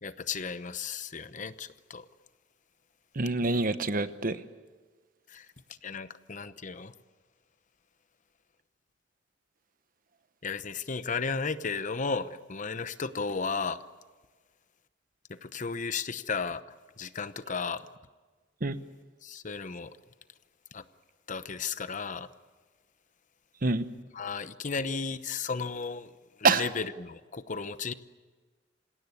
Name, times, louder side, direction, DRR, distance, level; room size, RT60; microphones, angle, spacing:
voice 1, 0.0-2.1 5.3-5.5 5.8-6.9 10.4-13.8 15.3-16.6 17.0-17.8 19.2-20.0 20.7-20.8 21.3-22.3 24.1-26.1 26.4-27.9, left 5 dB, 45° left, 13 dB, 0.8 m, -34 dB
voice 2, 3.2-4.4 18.6-18.8 23.6-23.9 26.4-26.7, right 3 dB, 50° right, 12 dB, 1.0 m, -26 dB
26.5 x 17.5 x 9.7 m, 1.4 s
head